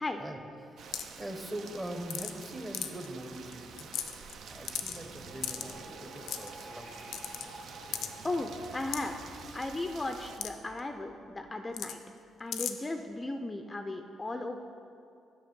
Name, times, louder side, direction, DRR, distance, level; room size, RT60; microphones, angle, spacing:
voice 1, 0.2-3.9 4.2-6.9, right 1 dB, 15° right, 5 dB, 0.9 m, -42 dB
Rain, 0.8-10.4, right 5 dB, 70° right, 0.5 m, -49 dB
sound 1, 0.9-1.2 2.1-2.4 2.7-3.1 3.5-3.6 3.8-4.3 4.7-5.0 5.4-5.7 6.3-6.5 7.1-7.4 7.9-8.1 8.9-9.0 10.4-10.5 10.8-10.9 11.7-11.9 12.5-12.7, left 10 dB, 85° left, 0.5 m, -35 dB
sound 2, 4.0-11.6, right 1 dB, 90° right, 1.5 m, -51 dB
voice 2, 8.2-9.1 9.5-12.0 12.4-14.6, left 2 dB, 20° left, 6 dB, 0.4 m, -36 dB
8.5 x 6.1 x 5.2 m, 2.5 s
cardioid pair, 90°, 0 cm